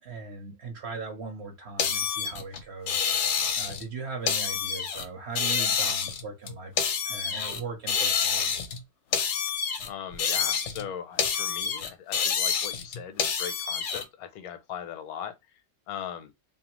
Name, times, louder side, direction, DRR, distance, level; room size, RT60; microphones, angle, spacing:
voice 1, 0.0-3.0 3.5-6.7 7.0-8.5, right 4 dB, 50° right, 1.0 m, -39 dB
sound 1, 1.8-3.9 4.3-5.1 5.4-7.6 7.9-8.8 9.1-10.9 11.2-14.0, left 7 dB, 65° left, 0.8 m, -28 dB
voice 2, 9.9-15.6 15.9-16.3, left 9 dB, 85° left, 1.1 m, -39 dB
2.7 x 2.2 x 2.9 m
omnidirectional pair, 1.5 m